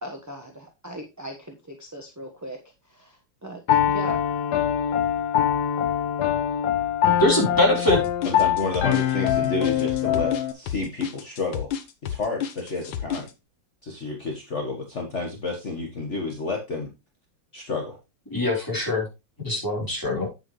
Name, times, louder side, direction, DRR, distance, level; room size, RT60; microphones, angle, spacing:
voice 1, 0.0-2.6 2.8-4.2, equal, 10° right, 1 dB, 1.0 m, -39 dB
Piano, 3.7-10.5, left 10 dB, 60° left, 1.4 m, -23 dB
voice 2, 7.2-8.0 18.3-19.1 19.4-20.3, left 1 dB, 10° left, -2 dB, 3.8 m, -22 dB
sound 1, 7.9-13.3, left 9 dB, 85° left, 1.7 m, -31 dB
voice 3, 8.2-11.7 12.0-13.2 13.8-16.9 17.5-18.0, left 3 dB, 40° left, 1 dB, 1.7 m, -30 dB
8.9 x 8.3 x 3.1 m, 0.25 s
omnidirectional pair, 2.0 m